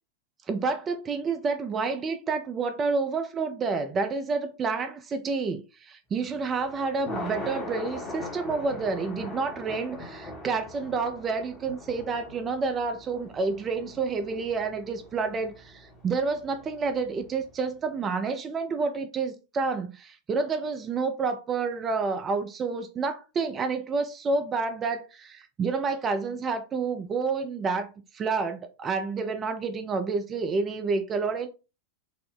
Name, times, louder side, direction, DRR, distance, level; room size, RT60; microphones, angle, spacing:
voice 1, 0.5-31.5, right 4 dB, 25° right, 0.5 m, -29 dB
Thunder, 6.2-17.5, left 2 dB, 30° left, 1.1 m, -41 dB
4.2 x 2.1 x 3.5 m
figure-of-eight pair, 90°, 0 cm